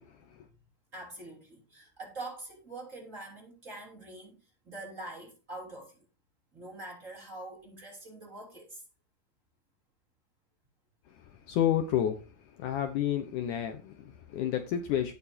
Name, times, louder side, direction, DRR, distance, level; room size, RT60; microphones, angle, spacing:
voice 1, 0.9-6.0 6.5-8.8, right 2 dB, 20° right, 3.0 m, -44 dB
voice 2, 11.5-12.2 12.6-15.1, left 10 dB, 70° left, 2.1 m, -30 dB
17.5 x 7.0 x 2.8 m
omnidirectional pair, 4.2 m